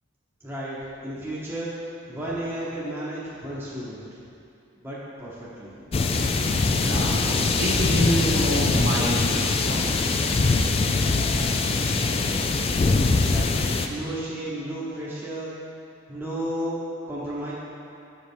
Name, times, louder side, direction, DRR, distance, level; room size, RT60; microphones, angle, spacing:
voice 1, 0.4-0.8 1.0-1.7 2.1-4.3 4.8-5.9 10.7-11.3 13.0-15.5 16.1-17.5, right 1 dB, 10° right, -8 dB, 1.0 m, -34 dB
meadow in the middle of the forest - rear, 5.9-13.9, left 3 dB, 30° left, 0.3 m, -23 dB
voice 2, 6.7-10.2, equal, 55° right, -5 dB, 1.5 m, -27 dB
7.4 x 5.4 x 4.5 m, 2.6 s
head